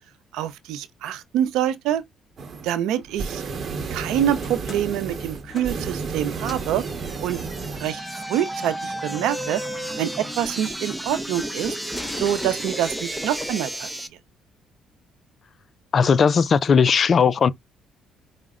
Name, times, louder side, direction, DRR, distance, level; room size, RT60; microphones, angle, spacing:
voice 1, 0.3-2.0 2.6-3.4 3.9-6.8 7.2-7.4 7.8-9.6 10.0-10.1 10.4-11.8 12.2-13.9, right 11 dB, 85° right, 0.5 m, -26 dB
sound 1, 2.4-2.7 3.0-7.9, right 5 dB, 45° right, 0.9 m, -32 dB
sound 2, 4.4-6.2 6.4-6.8 7.8-11.0 11.9-13.3, equal, 15° left, 1.2 m, -37 dB
sound 3, 6.1-14.1, right 1 dB, 5° right, 0.7 m, -33 dB
voice 2, 15.9-17.5, left 6 dB, 45° left, 0.4 m, -17 dB
4.9 x 2.1 x 3.6 m
cardioid pair, 100°, 0 cm